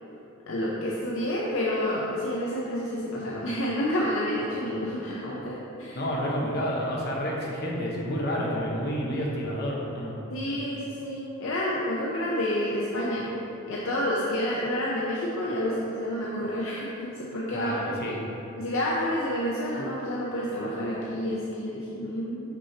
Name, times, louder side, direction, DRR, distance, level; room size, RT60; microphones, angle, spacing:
voice 1, 0.5-6.0 10.3-13.3 13.7-18.2 18.6-22.5, equal, 65° left, -5 dB, 0.6 m, -29 dB
voice 2, 5.9-10.2 17.5-18.2, equal, 50° left, -3 dB, 1.0 m, -29 dB
6.0 x 5.6 x 2.8 m, 2.9 s
head